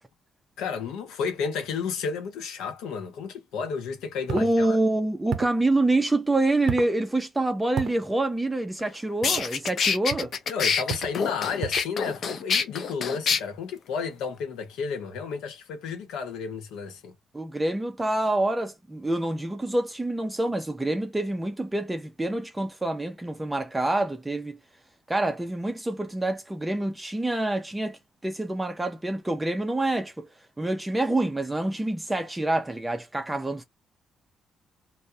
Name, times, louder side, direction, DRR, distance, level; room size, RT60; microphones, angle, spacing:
voice 1, 0.6-4.8 10.5-17.1, left 6 dB, 90° left, 0.8 m, -32 dB
voice 2, 4.3-10.3 17.3-24.6 25.1-30.3 30.6-33.6, right 2 dB, 10° right, 0.4 m, -26 dB
sound 1, 4.3-4.5 5.3-5.6 6.7-7.0 7.8-8.0 9.2-9.5 10.1-10.4 10.9-11.2 11.6-11.9, right 7 dB, 70° right, 0.5 m, -32 dB
sound 2, 8.8-8.9 9.2-13.4, left 6 dB, 55° left, 0.5 m, -26 dB
2.3 x 2.0 x 2.7 m
cardioid pair, 90°, 0 cm